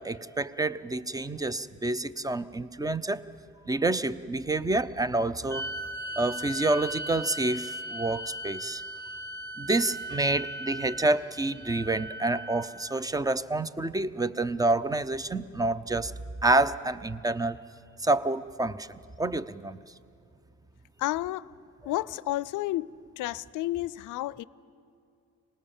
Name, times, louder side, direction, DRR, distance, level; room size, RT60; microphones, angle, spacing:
voice 1, 0.0-3.2 3.7-5.7 6.2-8.8 9.6-16.1 16.4-17.6 18.0-19.8, right 2 dB, 10° right, 0.7 m, -28 dB
sound 1, 5.5-13.0, equal, 40° right, 1.5 m, -38 dB
voice 2, 21.0-21.5 21.9-22.9 23.2-24.4, left 16 dB, 85° left, 0.5 m, -31 dB
25.0 x 19.5 x 7.2 m
cardioid pair, 90°, 30 cm